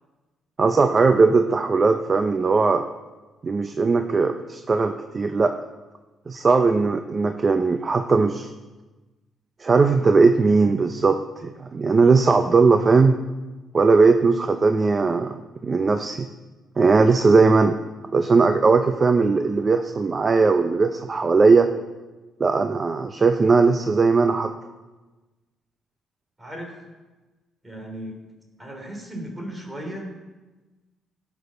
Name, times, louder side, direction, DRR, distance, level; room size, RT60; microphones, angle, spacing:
voice 1, 0.6-2.8 3.4-5.5 6.3-8.5 9.6-13.2 13.7-16.3 16.8-17.8 18.1-21.7 22.4-24.5, right 4 dB, 35° right, 7 dB, 0.6 m, -19 dB
voice 2, 26.4-26.7 27.6-28.2 28.6-30.1, right 1 dB, 15° right, 2 dB, 3.3 m, -35 dB
16.0 x 6.2 x 5.8 m, 1.2 s
cardioid pair, 90°, 0 cm